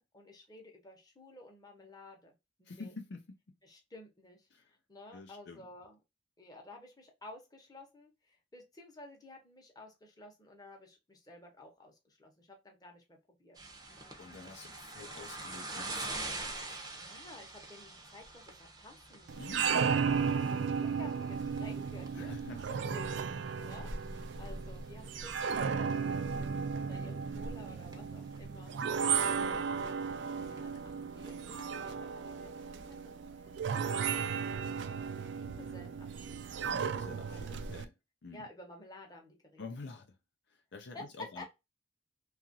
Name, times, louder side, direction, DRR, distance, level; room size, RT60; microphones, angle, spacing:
voice 1, 0.0-2.3 2.6-3.0 3.6-6.0 6.4-13.6 13.9-14.1 16.9-19.3 20.3-28.7 29.2-30.1 30.3-34.3 35.3-36.4 37.3-37.6 38.3-39.6 40.9-41.0 41.4-41.5, left 2 dB, 20° left, 0.9 m, -53 dB
voice 2, 2.7-3.2 4.5-4.6 5.1-5.6 14.2-16.8 19.4-19.9 20.2-20.4 22.1-23.0 29.4-29.7 36.7-37.9 38.2-38.4 39.6-40.1 40.7-41.4, left 3 dB, 65° left, 0.5 m, -48 dB
sound 1, 13.6-32.9, right 2 dB, 20° right, 0.6 m, -46 dB
sound 2, 19.3-37.9, right 6 dB, 70° right, 0.4 m, -35 dB
2.9 x 2.4 x 2.6 m
head